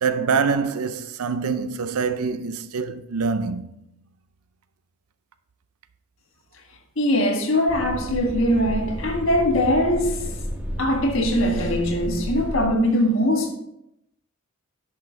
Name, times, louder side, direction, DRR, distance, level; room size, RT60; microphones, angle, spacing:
voice 1, 0.0-3.7, right 5 dB, 80° right, 0.5 m, -25 dB
voice 2, 7.0-10.2 10.8-13.5, equal, 55° left, 1.7 m, -21 dB
sound 1, 7.7-12.7, equal, 5° right, 1.3 m, -31 dB
10.5 x 5.9 x 3.9 m
head